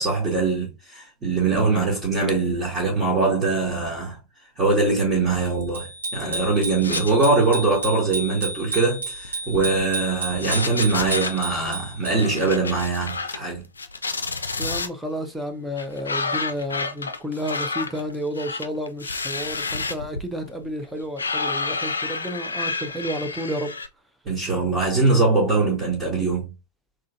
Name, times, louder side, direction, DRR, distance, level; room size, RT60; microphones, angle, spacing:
voice 1, 0.0-4.2 4.6-13.6 24.3-26.5, right 3 dB, 25° right, 1.7 m, -22 dB
Bicycle bell, 5.7-12.4, right 2 dB, 75° right, 1.4 m, -32 dB
sound 1, 6.8-7.4 7.7-7.9 9.1-10.0 10.3-11.4 12.1-13.5 13.8-14.9 15.8-23.9, left 4 dB, 75° left, 0.4 m, -30 dB
voice 2, 14.6-23.7, equal, 5° right, 0.7 m, -31 dB
3.8 x 3.2 x 2.6 m
figure-of-eight pair, 90°, 0 cm